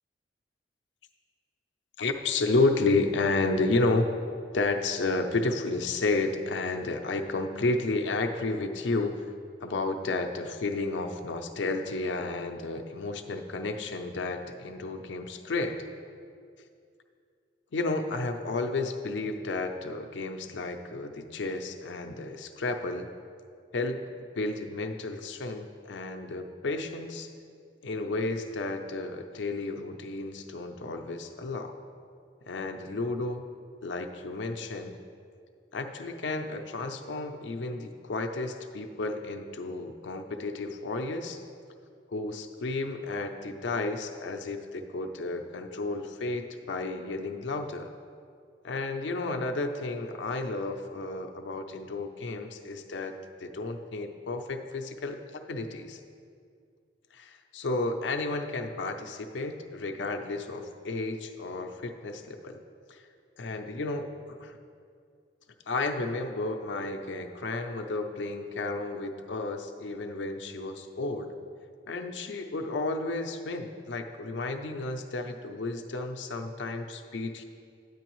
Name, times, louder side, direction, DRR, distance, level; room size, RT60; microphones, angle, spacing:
voice 1, 2.0-4.2 4.5-9.3 9.6-15.9 17.7-23.1 23.7-24.0 24.4-27.3 27.8-31.7 32.5-33.5 33.8-35.0 35.7-41.4 42.1-47.9 48.6-53.1 53.4-56.0 57.1-62.6 62.9-63.0 63.4-64.1 64.4-64.6 65.7-71.3 71.9-77.4, left 3 dB, 80° left, 5 dB, 0.5 m, -32 dB
9.3 x 9.0 x 3.0 m, 2.3 s
head